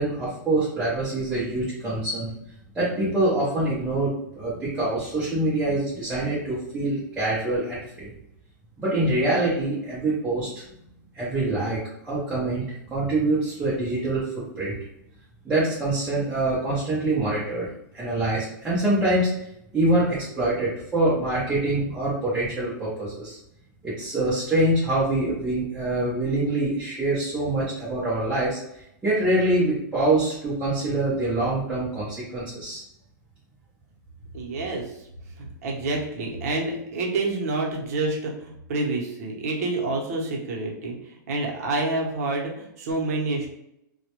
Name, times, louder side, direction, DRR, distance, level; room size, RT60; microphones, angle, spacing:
voice 1, 0.0-2.3 2.7-8.1 8.8-10.6 11.1-14.2 14.6-14.7 15.4-17.7 17.9-19.3 19.7-23.4 23.8-28.6 29.0-32.8, right 2 dB, 10° right, -10 dB, 0.5 m, -25 dB
voice 2, 34.3-34.9 35.4-43.5, right 2 dB, 50° right, 0 dB, 0.7 m, -28 dB
2.2 x 2.1 x 2.9 m, 0.79 s
supercardioid pair, 165°, 10 cm